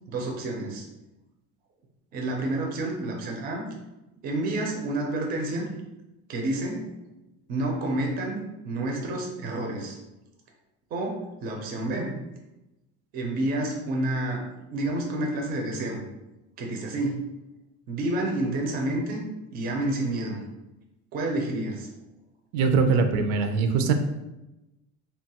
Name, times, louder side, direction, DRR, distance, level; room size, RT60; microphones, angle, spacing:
voice 1, 0.1-0.9 2.1-3.6 4.2-5.7 6.3-6.9 7.5-8.4 8.6-10.0 10.9-12.1 13.1-16.0 16.6-17.2 17.9-19.2 19.5-20.4 21.1-21.9, right 1 dB, 30° right, 1 dB, 0.4 m, -29 dB
voice 2, 22.5-23.9, right 5 dB, 90° right, 6 dB, 0.5 m, -22 dB
2.8 x 2.3 x 2.8 m, 0.97 s
cardioid pair, 170°, 32 cm